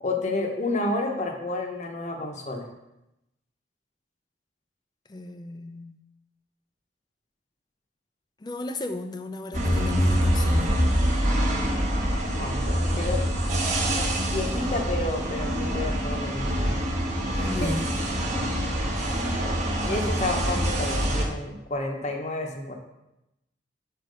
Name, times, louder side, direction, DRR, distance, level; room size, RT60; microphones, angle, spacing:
voice 1, 0.0-2.7 11.9-12.0 12.3-13.2 13.9-16.8 17.4-17.7 19.8-22.7, left 2 dB, 40° left, 3 dB, 0.9 m, -30 dB
voice 2, 5.1-6.0 8.4-10.8 17.3-17.9, left 1 dB, 25° left, 8 dB, 0.4 m, -34 dB
sound 1, 9.5-21.2, equal, 40° right, 1.1 m, -25 dB
6.6 x 4.4 x 5.2 m, 0.90 s
head